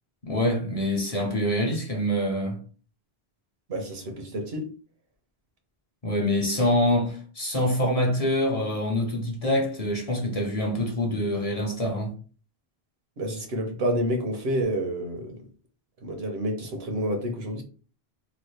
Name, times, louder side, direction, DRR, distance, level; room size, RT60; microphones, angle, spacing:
voice 1, 0.2-2.6 6.0-12.1, left 1 dB, 40° left, 0.6 m, -25 dB
voice 2, 3.7-4.7 13.2-15.4 16.0-17.6, equal, 75° right, 1.1 m, -29 dB
3.1 x 2.3 x 3.1 m
omnidirectional pair, 1.1 m